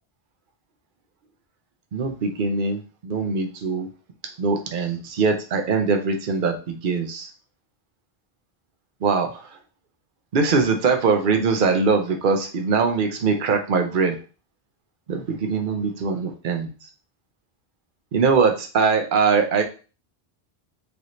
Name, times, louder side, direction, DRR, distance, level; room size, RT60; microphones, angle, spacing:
voice 1, 1.9-3.9 4.4-7.3 9.0-9.4 10.3-14.2 15.1-16.7 18.1-19.6, right 4 dB, 60° right, 5 dB, 0.8 m, -22 dB
4.9 x 2.8 x 3.0 m, 0.35 s
omnidirectional pair, 1.0 m